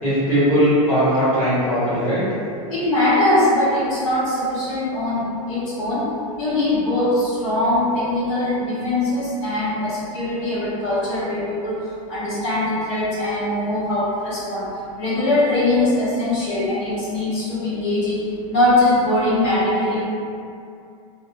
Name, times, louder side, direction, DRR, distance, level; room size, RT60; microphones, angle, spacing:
voice 1, 0.0-2.2, equal, 5° left, -15 dB, 1.1 m, -19 dB
voice 2, 2.7-6.1 6.4-14.7 15.0-18.2 18.5-20.0, left 1 dB, 60° left, -10 dB, 1.0 m, -21 dB
2.5 x 2.1 x 2.5 m, 2.5 s
supercardioid pair, 145°, 18 cm